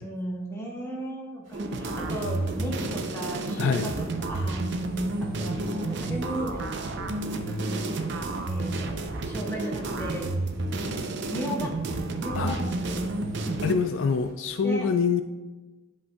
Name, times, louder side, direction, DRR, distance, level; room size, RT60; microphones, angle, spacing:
voice 1, 0.0-4.6 5.2-6.7 7.2-8.0 8.5-10.3 11.3-11.7 12.2-13.1 13.4-13.7 14.6-14.9, equal, 15° left, -3 dB, 1.2 m, -36 dB
sound 1, 1.4-14.3, equal, 80° right, 2.0 m, -51 dB
sound 2, 1.5-13.7, right 2 dB, 60° right, 0.5 m, -30 dB
voice 2, 3.6-3.9 12.4-12.6 13.6-15.2, left 5 dB, 70° left, 9 dB, 0.3 m, -25 dB
9.9 x 5.4 x 2.3 m, 1.2 s
head